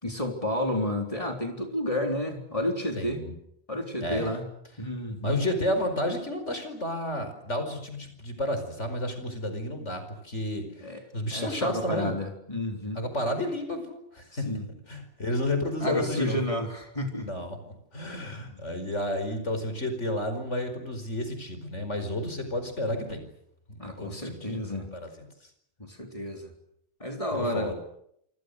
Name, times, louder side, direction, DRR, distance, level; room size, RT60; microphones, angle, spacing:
voice 1, 0.0-3.2 3.7-4.4 4.8-5.4 10.8-11.0 11.3-13.0 14.3-14.6 15.8-17.3 18.4-18.6 23.8-25.0 25.8-26.5 27.0-27.7, left 1 dB, 30° left, 3 dB, 4.0 m, -31 dB
voice 2, 3.0-3.3 4.0-4.3 5.2-12.1 13.0-14.5 14.9-16.4 17.1-23.3 23.7-24.6 24.9-25.1 27.3-27.7, left 1 dB, 80° left, 8 dB, 5.2 m, -31 dB
27.5 x 27.0 x 6.7 m, 0.75 s
omnidirectional pair, 1.2 m